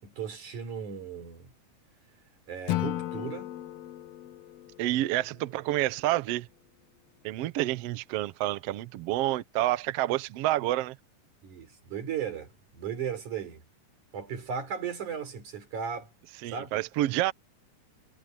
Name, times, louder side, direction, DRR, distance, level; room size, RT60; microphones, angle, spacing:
voice 1, 0.0-1.5 2.5-3.6 11.4-13.6 14.1-16.1 16.4-16.8, right 7 dB, 65° right, 5.3 m, -36 dB
Acoustic guitar / Strum, 2.7-5.8, left 14 dB, 70° left, 1.5 m, -35 dB
voice 2, 4.8-6.5 7.2-11.0 16.4-17.3, right 15 dB, 80° right, 1.4 m, -28 dB
omnidirectional pair, 3.8 m